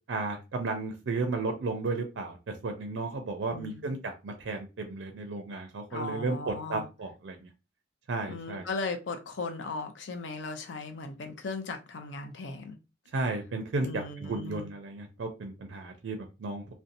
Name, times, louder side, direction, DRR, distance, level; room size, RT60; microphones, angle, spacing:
voice 1, 0.1-7.5 8.1-8.7 13.1-16.7, right 3 dB, 70° right, 0.4 m, -34 dB
voice 2, 3.5-4.0 5.9-6.9 8.3-12.8 13.8-14.7, left 3 dB, 70° left, 0.5 m, -37 dB
2.7 x 2.1 x 2.5 m
head